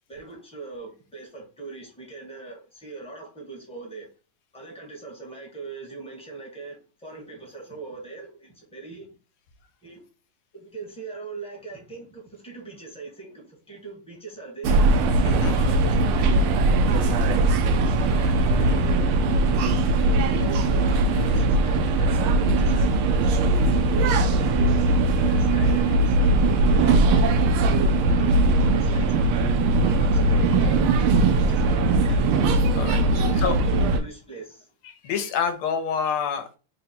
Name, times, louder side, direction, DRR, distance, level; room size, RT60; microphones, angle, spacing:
voice 1, 0.1-4.1 4.5-9.1 9.8-10.0 10.5-14.9 15.2-16.6 16.8-17.4 17.7-19.2 20.0-24.8 25.1-27.3 27.6-29.5 30.0-32.3 33.1-34.7, right 4 dB, 5° left, 0.7 m, -40 dB
sound 1, 14.6-34.0, right 2 dB, 80° right, 1.4 m, -20 dB
voice 2, 15.2-15.5 29.9-30.0 32.8-33.0 33.4-33.6 34.8-36.5, left 7 dB, 85° left, 1.6 m, -27 dB
4.0 x 2.1 x 4.1 m
omnidirectional pair, 2.4 m